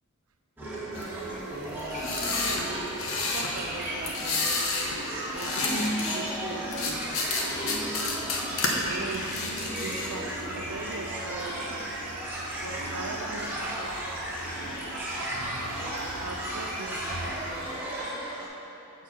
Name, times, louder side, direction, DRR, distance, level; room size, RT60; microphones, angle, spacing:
sound 1, 0.6-18.5, right 1 dB, 10° right, 1.4 m, -34 dB
sound 2, 0.9-17.8, equal, 90° left, 1.1 m, -44 dB
sound 3, 1.8-3.5 4.0-5.0 5.2-6.2 6.7-8.7 9.1-10.1, left 4 dB, 65° left, 0.9 m, -30 dB
voice 1, 2.2-2.9 3.2-4.6 5.3-7.2 8.8-11.8 12.6-14.2 16.2-17.7, right 3 dB, 75° right, 5 dB, 0.6 m, -40 dB
8.0 x 4.6 x 5.1 m, 3.0 s
head